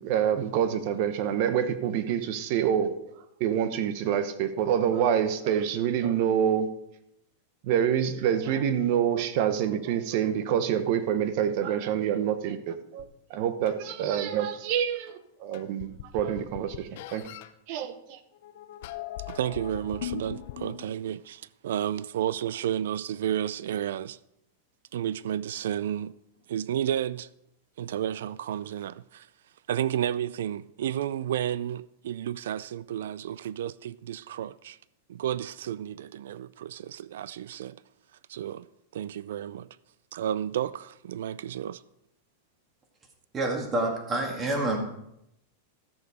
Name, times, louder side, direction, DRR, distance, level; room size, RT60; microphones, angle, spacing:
voice 1, 0.0-2.9 3.4-6.7 7.6-17.2 17.7-18.2, right 9 dB, 50° right, 1.0 m, -27 dB
sound 1, 13.0-13.1 13.7-13.8 15.1-15.2 15.5-17.5 18.3-21.0, left 12 dB, 60° left, 0.6 m, -39 dB
voice 2, 19.3-24.2 24.9-26.1 26.5-27.3 27.8-29.3 29.7-34.8 35.1-37.8 38.3-38.7 38.9-39.7 40.1-41.8, right 10 dB, 80° right, 0.3 m, -32 dB
voice 3, 43.3-44.8, right 2 dB, 20° right, 2.1 m, -27 dB
13.5 x 6.8 x 4.9 m
supercardioid pair, 150°, 0 cm